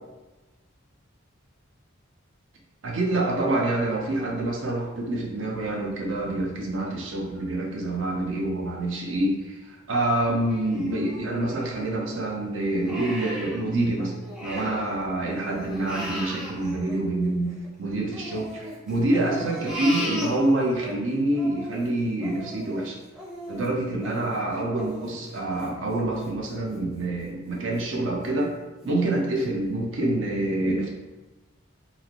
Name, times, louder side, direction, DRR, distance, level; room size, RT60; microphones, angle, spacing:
voice 1, 2.8-14.1 14.4-23.0 23.5-28.5 28.8-30.9, right 1 dB, 70° right, 0 dB, 0.6 m, -26 dB
Crying sobbing, 10.5-12.1 12.6-14.9 15.2-17.7 18.1-20.9 21.3-26.8 27.2-27.3 27.8-28.3 28.8-28.9 29.4-29.5, equal, 5° right, 0.5 m, -38 dB
3.2 x 2.9 x 2.5 m, 1.1 s
head